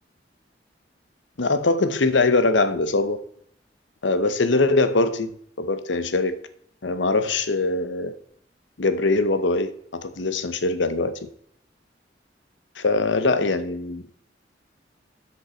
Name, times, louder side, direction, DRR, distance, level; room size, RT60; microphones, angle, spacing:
voice 1, 1.4-3.2 4.0-5.3 5.6-6.4 6.8-8.1 8.8-11.3 12.8-14.1, left 3 dB, 85° left, 11 dB, 0.9 m, -22 dB
13.0 x 5.3 x 4.4 m, 0.67 s
head